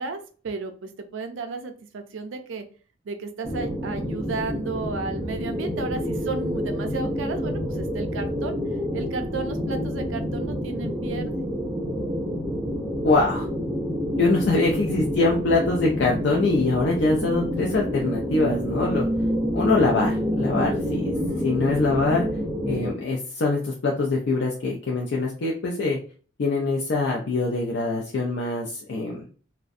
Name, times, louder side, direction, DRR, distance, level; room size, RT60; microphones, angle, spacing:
voice 1, 0.0-2.6 3.1-8.6 8.9-11.3 21.2-21.4, right 3 dB, 85° right, 6 dB, 0.4 m, -33 dB
sound 1, 3.4-22.9, equal, 10° right, 0.3 m, -28 dB
voice 2, 13.0-13.5 14.2-19.1 19.5-21.1 21.4-22.2 22.7-26.0 26.4-29.3, left 3 dB, 65° left, -1 dB, 0.4 m, -23 dB
2.5 x 2.1 x 2.4 m, 0.40 s
head